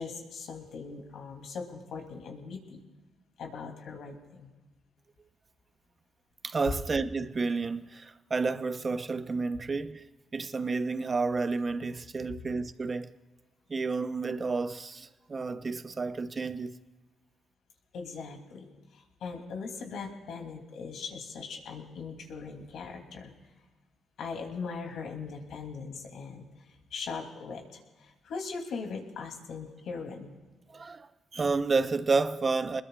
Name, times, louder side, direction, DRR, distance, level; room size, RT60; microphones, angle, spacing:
voice 1, 0.0-2.8 3.4-4.5 17.9-18.7 18.9-23.3 24.2-26.5 26.9-30.3, left 5 dB, 70° left, 2.9 m, -40 dB
voice 2, 6.4-10.0 10.3-13.1 13.7-16.8 30.7-32.8, right 4 dB, 35° right, 0.9 m, -30 dB
27.0 x 21.0 x 2.4 m
cardioid pair, 90°, 0 cm